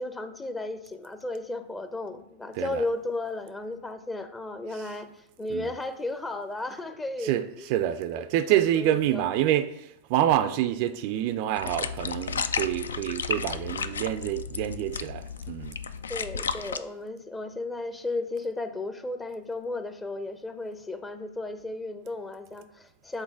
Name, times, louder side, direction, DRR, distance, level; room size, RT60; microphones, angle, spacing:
voice 1, 0.0-5.1 5.4-7.8 8.1-9.3 16.1-23.2, left 2 dB, 15° left, 0.6 m, -34 dB
voice 2, 7.2-15.8, right 12 dB, 45° right, 0.4 m, -27 dB
sound 1, 11.6-16.8, left 6 dB, 70° left, 0.3 m, -33 dB
8.1 x 3.8 x 3.7 m
figure-of-eight pair, 90°, 0 cm